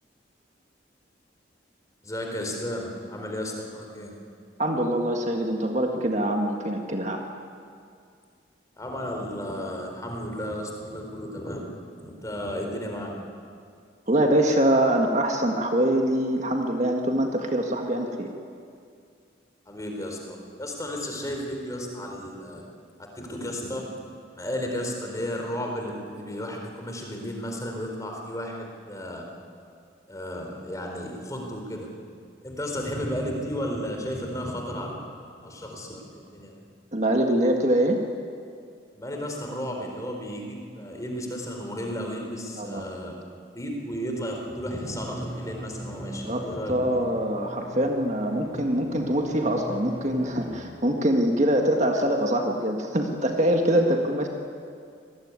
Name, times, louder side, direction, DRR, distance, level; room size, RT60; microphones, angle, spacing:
voice 1, 2.0-4.1 8.8-11.6 12.0-13.1 19.7-22.6 23.0-23.8 24.4-29.2 30.1-31.9 32.4-35.0 35.4-36.5 38.9-43.1 43.5-47.0, equal, 15° left, 1 dB, 4.0 m, -33 dB
voice 2, 4.6-7.2 14.1-18.3 36.9-38.0 42.5-43.1 46.2-54.3, right 1 dB, 40° right, 3 dB, 1.7 m, -24 dB
sound 1, 44.8-50.5, right 1 dB, 20° right, 5.2 m, -40 dB
26.0 x 19.5 x 9.7 m, 2.3 s
head